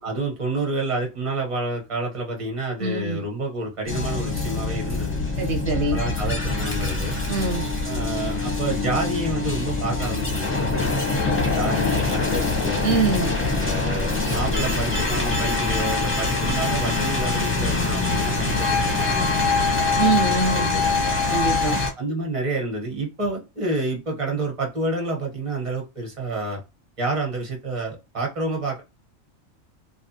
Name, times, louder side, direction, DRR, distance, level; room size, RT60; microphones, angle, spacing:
voice 1, 0.0-5.2 5.9-7.2 7.8-10.9 11.5-12.9 13.5-21.2 22.0-26.6 27.0-28.8, right 2 dB, 25° right, 1.1 m, -29 dB
voice 2, 2.8-3.2 5.4-6.0 7.3-7.6 12.8-13.3 20.0-20.7 21.3-21.8, right 3 dB, 55° right, 1.0 m, -23 dB
sound 1, 3.9-21.9, left 3 dB, 15° left, 0.6 m, -24 dB
3.1 x 2.3 x 2.8 m
omnidirectional pair, 1.4 m